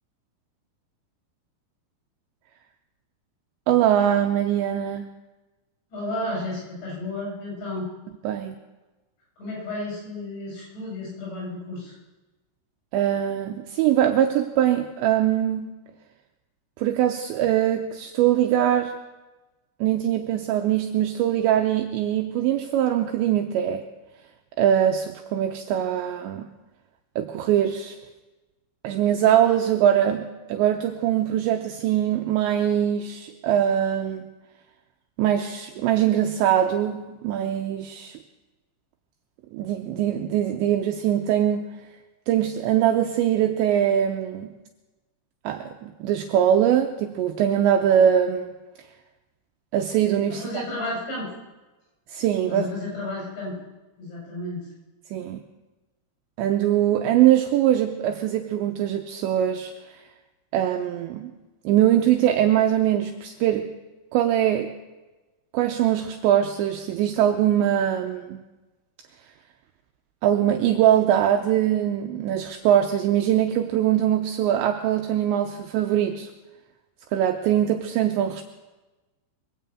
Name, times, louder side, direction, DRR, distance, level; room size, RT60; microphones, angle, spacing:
voice 1, 3.7-5.1 8.2-8.6 12.9-15.7 16.8-18.9 19.8-23.8 24.6-26.5 27.2-28.0 28.8-34.3 35.2-38.2 39.5-41.6 42.3-44.5 45.4-48.5 49.7-50.6 52.1-52.7 55.1-55.4 56.4-60.0 60.5-61.3 61.7-63.7 64.1-64.7 65.5-68.4 70.2-76.3 77.1-78.4, right 10 dB, 90° right, 4 dB, 2.5 m, -22 dB
voice 2, 5.9-7.9 9.4-11.9 50.3-51.3 52.5-53.6 54.0-54.7, left 2 dB, 60° left, -3 dB, 8.2 m, -32 dB
22.0 x 7.4 x 8.3 m, 1.1 s
omnidirectional pair, 6.0 m